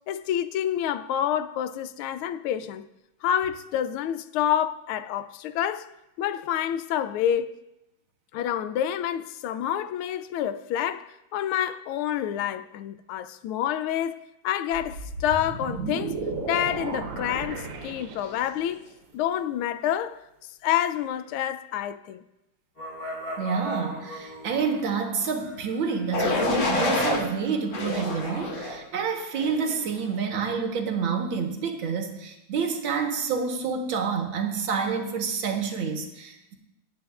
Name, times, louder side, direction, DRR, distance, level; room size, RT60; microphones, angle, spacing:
voice 1, 0.1-2.9 3.2-5.9 6.2-7.5 8.3-14.2 14.4-18.9 19.1-20.2 20.6-22.2, left 10 dB, 85° left, 1.4 m, -28 dB
sound 1, 14.7-18.7, right 3 dB, 85° right, 1.9 m, -34 dB
sound 2, 22.8-28.9, left 1 dB, 20° left, 3.6 m, -41 dB
voice 2, 23.4-36.5, right 5 dB, 70° right, 1.9 m, -28 dB
sound 3, 26.1-27.2 27.7-28.8 29.3-29.7, left 2 dB, 65° left, 2.3 m, -27 dB
19.0 x 9.6 x 2.4 m
omnidirectional pair, 2.3 m